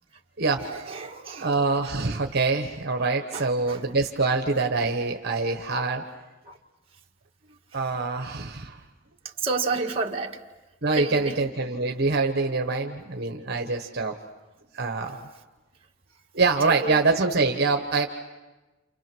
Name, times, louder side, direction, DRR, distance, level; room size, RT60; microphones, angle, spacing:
voice 1, 0.6-1.5 3.3-3.8 6.5-6.6 9.4-10.4 10.9-11.4 16.6-17.0, right 4 dB, 30° right, 0 dB, 1.8 m, -30 dB
voice 2, 1.3-6.0 7.7-8.8 10.8-14.1 14.7-15.3 16.3-18.1, right 3 dB, 55° right, 4 dB, 1.3 m, -25 dB
29.0 x 29.0 x 6.2 m, 1.1 s
head